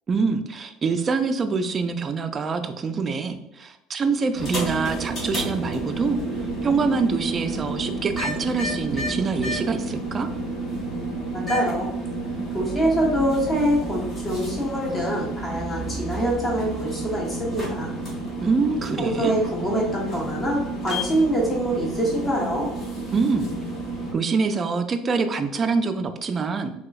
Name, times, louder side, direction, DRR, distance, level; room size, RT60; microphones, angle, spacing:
voice 1, 0.1-10.3 18.4-19.3 23.1-23.5 24.1-26.7, right 4 dB, 25° right, 7 dB, 0.3 m, -25 dB
sound 1, 4.3-24.1, right 2 dB, 40° left, 1.5 m, -30 dB
voice 2, 11.3-11.9 12.5-17.9 19.0-22.7, right 1 dB, 20° left, -3 dB, 0.9 m, -24 dB
3.4 x 2.9 x 2.3 m, 0.86 s
cardioid pair, 140°, 0 cm